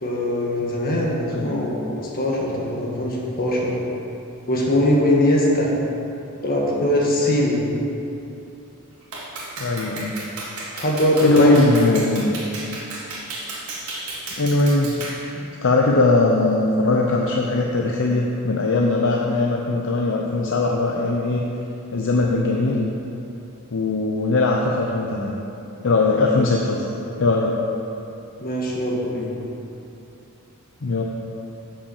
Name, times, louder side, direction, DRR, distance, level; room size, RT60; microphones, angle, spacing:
voice 1, 0.0-1.7 2.1-3.7 4.5-5.7 6.4-7.6 10.7-11.6 26.4-26.5 28.4-29.4, left 1 dB, 45° left, -3 dB, 1.5 m, -21 dB
voice 2, 1.3-1.7 9.6-10.1 11.2-12.3 14.4-21.4 21.9-22.9 23.7-25.3 25.8-26.8 27.2-27.6 30.8-31.0, left 2 dB, 60° left, -1 dB, 0.6 m, -20 dB
Clapping, 9.1-15.2, right 2 dB, 90° right, 1.7 m, -33 dB
7.3 x 5.7 x 7.0 m, 2.9 s
head